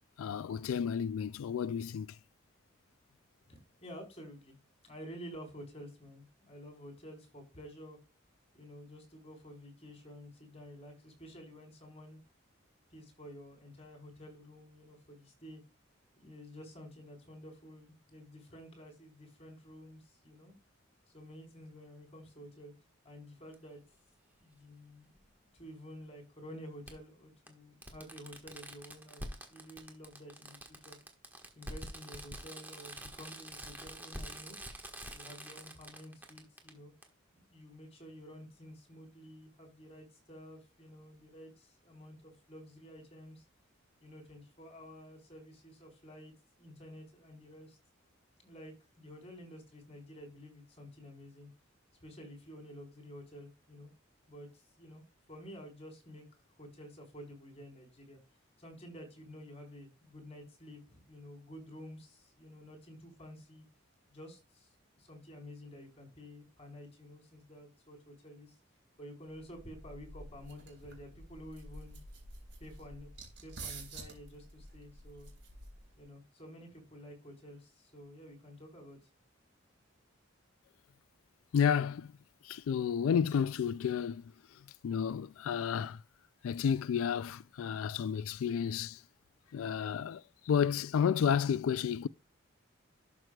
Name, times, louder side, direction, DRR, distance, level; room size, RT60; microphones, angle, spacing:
voice 1, 0.2-2.2 81.5-82.1 82.4-86.0 86.4-89.0 89.5-92.1, left 7 dB, 85° left, 0.3 m, -31 dB
voice 2, 3.5-4.6 4.8-8.0 8.5-12.2 12.9-15.6 16.2-20.5 21.1-22.7 23.0-23.8 24.4-31.0 31.5-34.6 35.1-36.9 37.3-43.4 44.0-47.8 48.4-51.5 52.0-53.9 54.3-55.0 55.3-56.2 56.6-58.2 58.6-63.6 64.1-68.6 69.0-72.0 72.6-73.1 73.4-75.3 76.0-79.1, equal, 30° left, 4.2 m, -51 dB
Fireworks, 23.5-23.6 25.2-25.3 26.9-27.0 27.5-27.6 27.8-36.7 37.0-37.1, right 1 dB, 10° right, 1.4 m, -46 dB
sound 1, 69.3-76.0, right 2 dB, 55° right, 4.0 m, -49 dB
12.0 x 6.2 x 2.3 m
head